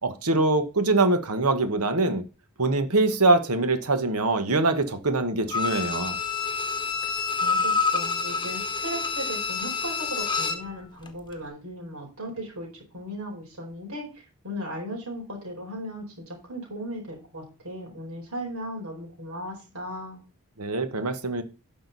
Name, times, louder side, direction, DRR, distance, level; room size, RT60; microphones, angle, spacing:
voice 1, 0.0-2.2 2.6-6.2 20.6-21.4, right 2 dB, 90° right, 1.5 m, -23 dB
Bowed string instrument, 5.5-10.7 11.1-11.2, left 5 dB, 20° left, 1.2 m, -28 dB
voice 2, 7.4-12.7 12.9-20.2, equal, 75° right, 4.6 m, -37 dB
11.0 x 6.3 x 4.1 m
head